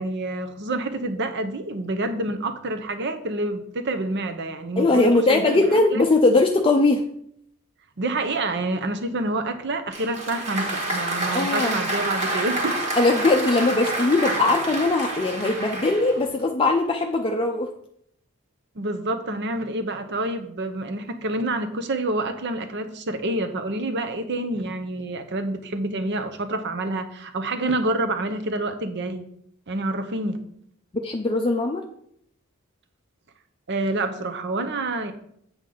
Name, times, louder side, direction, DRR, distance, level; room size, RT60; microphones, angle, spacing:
voice 1, 0.0-6.0 8.0-12.8 18.8-29.3 29.7-30.4 33.7-35.1, right 2 dB, 55° right, 8 dB, 0.8 m, -28 dB
voice 2, 4.8-7.0 11.3-11.7 13.0-17.7 31.0-31.8, left 2 dB, 25° left, 3 dB, 0.5 m, -20 dB
Applause, 9.9-16.3, right 1 dB, 30° right, 1.5 m, -28 dB
8.1 x 6.2 x 3.9 m, 0.70 s
head